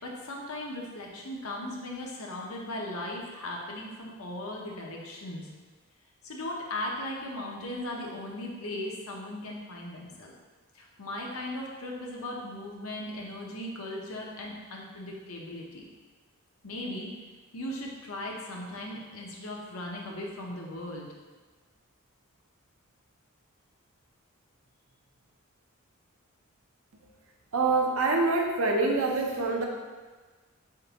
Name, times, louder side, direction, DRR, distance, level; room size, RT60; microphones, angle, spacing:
voice 1, 0.0-5.5 6.2-10.3 10.7-15.9 16.6-17.1 17.5-21.1, left 1 dB, 85° left, -1 dB, 0.8 m, -38 dB
voice 2, 27.5-29.6, right 3 dB, 70° right, 1 dB, 0.7 m, -25 dB
4.5 x 3.7 x 2.9 m, 1.4 s
head